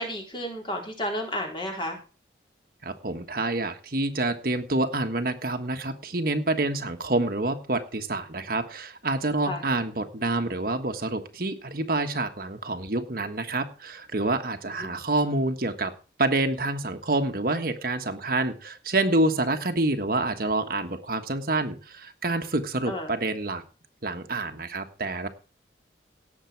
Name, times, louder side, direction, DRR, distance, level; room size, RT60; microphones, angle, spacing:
voice 1, 0.0-2.0 9.5-9.6 14.7-15.0 22.9-23.1, equal, 30° left, 1 dB, 4.1 m, -32 dB
voice 2, 2.8-15.9 16.2-23.6 24.0-25.3, right 2 dB, 50° right, 6 dB, 1.4 m, -27 dB
18.0 x 7.5 x 4.6 m, 0.34 s
head